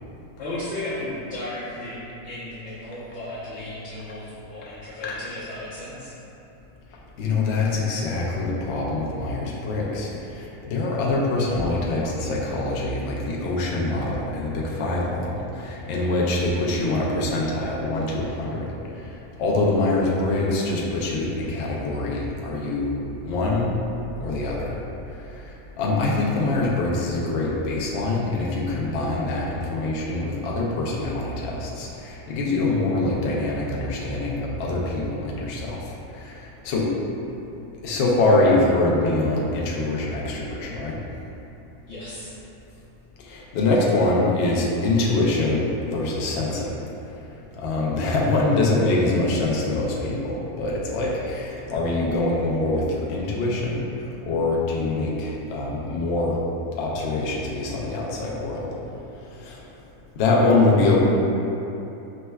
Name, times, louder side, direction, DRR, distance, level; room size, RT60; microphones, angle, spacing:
voice 1, 0.4-2.0 2.2-6.1 41.9-42.3, left 1 dB, 50° left, -14 dB, 0.9 m, -34 dB
voice 2, 7.2-18.7 19.0-19.1 19.4-23.0 23.3-23.7 24.2-24.8 25.1-25.5 25.8-36.9 37.8-41.0 43.2-46.7 47.6-56.4 56.8-58.7 59.4-59.6 60.2-61.0, left 2 dB, 70° left, -4 dB, 0.6 m, -24 dB
5.0 x 2.2 x 2.2 m, 2.9 s
omnidirectional pair, 1.6 m